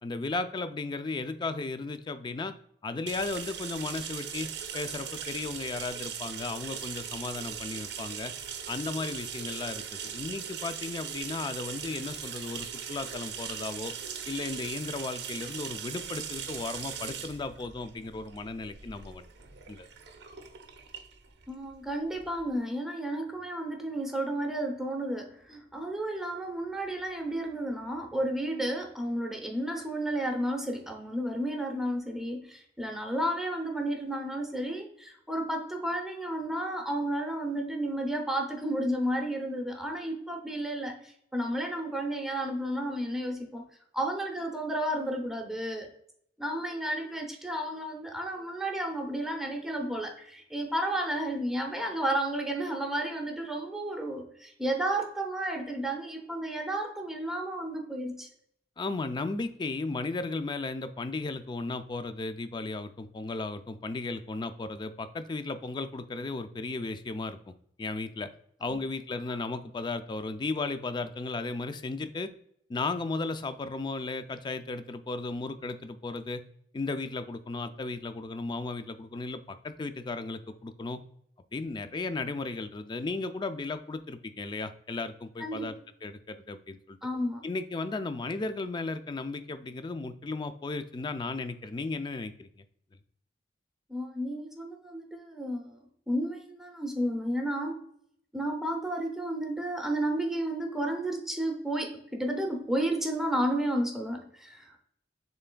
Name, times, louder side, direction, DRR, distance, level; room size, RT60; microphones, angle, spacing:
voice 1, 0.0-2.5 2.8-8.3 8.7-13.9 14.3-19.3 19.7-19.9 58.8-67.4 67.8-68.3 68.6-72.3 72.7-76.4 76.7-81.0 81.5-85.7 86.0-87.0 87.4-92.6, left 3 dB, 25° left, 10 dB, 0.3 m, -35 dB
sound 1, 3.1-22.5, right 8 dB, 65° right, 0.6 m, -40 dB
voice 2, 21.5-43.6 43.9-45.9 46.4-58.3 68.6-68.8 69.3-69.4 85.4-85.7 87.0-87.5 93.9-95.8 96.1-97.8 98.3-104.8, right 1 dB, ahead, 2 dB, 0.7 m, -32 dB
6.9 x 3.3 x 2.2 m, 0.69 s
head